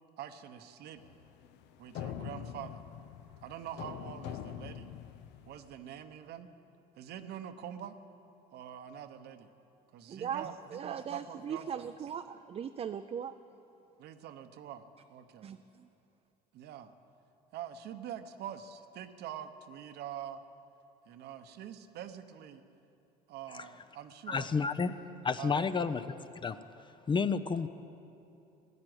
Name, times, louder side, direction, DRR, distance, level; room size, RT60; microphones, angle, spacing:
voice 1, 0.2-1.0 1.8-2.8 3.4-4.9 5.5-6.5 7.0-7.9 8.5-9.5 9.9-11.9 14.0-14.8 15.1-15.5 16.5-16.9 17.5-20.4 21.1-22.6 23.3-24.5 25.4-25.8, right 9 dB, 60° right, 1.0 m, -45 dB
sound 1, 1.0-5.8, left 9 dB, 70° left, 0.7 m, -44 dB
voice 2, 10.1-13.3 15.4-15.9, right 8 dB, 35° right, 0.5 m, -39 dB
voice 3, 24.3-24.9 25.2-26.2 26.4-26.6 27.1-27.7, left 5 dB, 25° left, 0.6 m, -30 dB
16.0 x 9.7 x 7.9 m
supercardioid pair, 85°, 19 cm